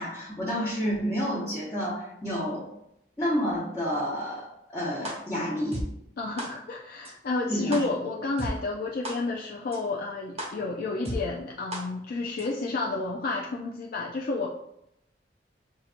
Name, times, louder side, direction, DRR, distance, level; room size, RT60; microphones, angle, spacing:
voice 1, 0.0-2.7 3.2-5.8 7.5-7.8, equal, 20° left, -10 dB, 1.0 m, -30 dB
sound 1, 5.0-5.1 5.7-5.8 6.4-6.5 7.1-7.2 7.7-7.8 8.4-8.5 9.0-9.1 9.7-9.8 10.4-10.5 11.1-11.2 11.7-11.8 12.4-12.5, right 1 dB, 35° right, 0.9 m, -33 dB
voice 2, 6.2-14.5, left 3 dB, 55° left, -2 dB, 0.4 m, -31 dB
5.8 x 2.6 x 2.5 m, 0.79 s
head